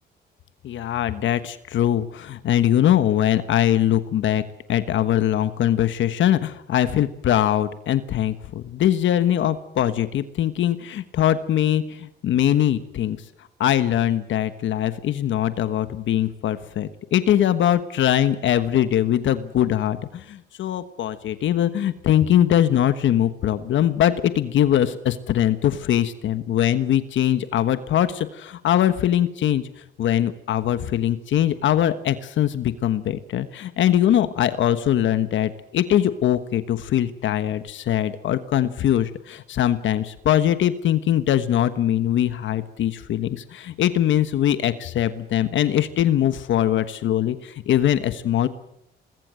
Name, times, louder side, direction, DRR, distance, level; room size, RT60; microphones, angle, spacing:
voice 1, 0.6-4.4 4.7-13.2 13.6-29.7 30.0-48.5, left 11 dB, 75° left, 12 dB, 1.3 m, -22 dB
23.5 x 20.0 x 7.7 m, 0.77 s
cardioid pair, 90°, 20 cm